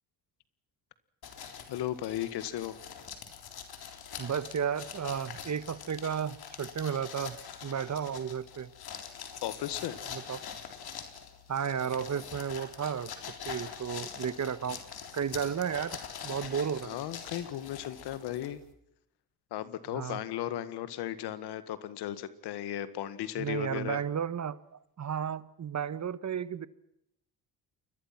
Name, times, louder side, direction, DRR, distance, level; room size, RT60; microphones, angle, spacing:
sound 1, 1.2-18.7, left 7 dB, 70° left, 3.8 m, -44 dB
voice 1, 1.7-2.8 9.4-10.0 16.8-18.6 19.5-24.0, left 12 dB, 85° left, 14 dB, 1.8 m, -36 dB
voice 2, 4.2-7.4 7.6-8.7 10.1-10.4 11.5-13.1 13.4-14.8 15.1-16.0 16.2-17.0 19.9-20.2 23.4-24.6 25.0-26.7, right 7 dB, 45° right, 16 dB, 1.3 m, -33 dB
29.0 x 22.0 x 6.0 m, 0.78 s
supercardioid pair, 70°, 39 cm